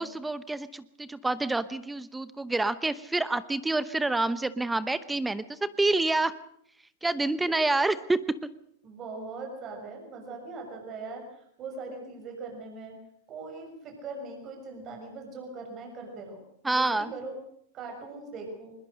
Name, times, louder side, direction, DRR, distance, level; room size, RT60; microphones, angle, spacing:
voice 1, 0.0-6.3 7.0-8.2 16.6-17.1, right 2 dB, 5° right, 15 dB, 0.9 m, -28 dB
voice 2, 8.8-13.0 13.3-16.4 16.7-17.4 17.7-18.7, right 3 dB, 35° right, 3 dB, 6.5 m, -40 dB
21.0 x 20.5 x 6.5 m, 0.70 s
hypercardioid pair, 130°, 0 cm